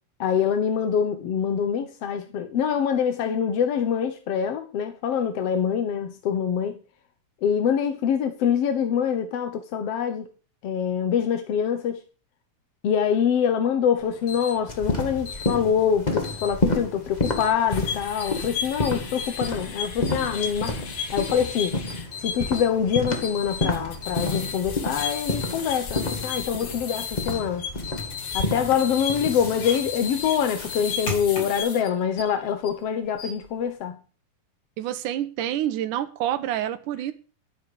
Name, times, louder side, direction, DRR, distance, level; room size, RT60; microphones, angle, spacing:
voice 1, 0.2-6.8 7.4-10.3 10.6-12.0 12.8-20.8 21.1-21.8 22.2-27.6 28.3-34.0, left 8 dB, 60° left, 1.8 m, -25 dB
Alarm, 14.0-31.6, left 5 dB, 40° left, 7.2 m, -39 dB
sound 1, 14.7-30.9, left 2 dB, 20° left, 1.1 m, -30 dB
sound 2, 17.7-32.7 33.1-33.5, left 6 dB, 85° left, 4.2 m, -35 dB
voice 2, 34.8-37.1, right 11 dB, 80° right, 2.5 m, -27 dB
12.0 x 9.2 x 6.9 m
omnidirectional pair, 3.7 m